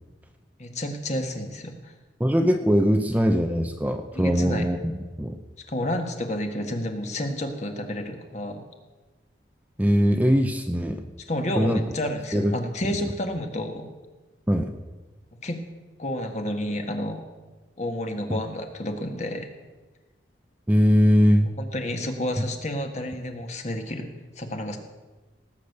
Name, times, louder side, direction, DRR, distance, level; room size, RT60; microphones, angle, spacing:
voice 1, 0.6-1.9 4.1-4.6 5.7-8.6 11.3-13.9 15.4-15.6 16.0-17.2 17.8-19.5 21.6-24.1 24.4-24.8, left 1 dB, 40° left, 5 dB, 1.7 m, -30 dB
voice 2, 2.2-4.8 5.2-5.4 9.8-11.0 11.6-11.8 12.3-12.5 14.5-14.7 18.3-18.4 20.7-21.5, equal, 10° right, 6 dB, 0.7 m, -21 dB
18.0 x 8.4 x 6.7 m, 1.2 s
head